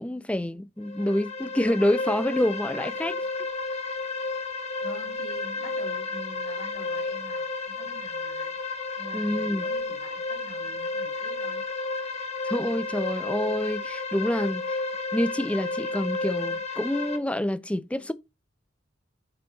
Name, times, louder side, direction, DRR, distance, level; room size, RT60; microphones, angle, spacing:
voice 1, 0.0-3.2 9.1-9.7 12.4-14.6 15.1-18.1, left 1 dB, 5° left, 0.4 m, -27 dB
sound 1, 0.8-17.2, left 3 dB, 35° left, 1.0 m, -32 dB
voice 2, 4.8-8.5 9.0-11.6, right 1 dB, 65° left, 2.3 m, -45 dB
6.9 x 4.7 x 4.0 m
head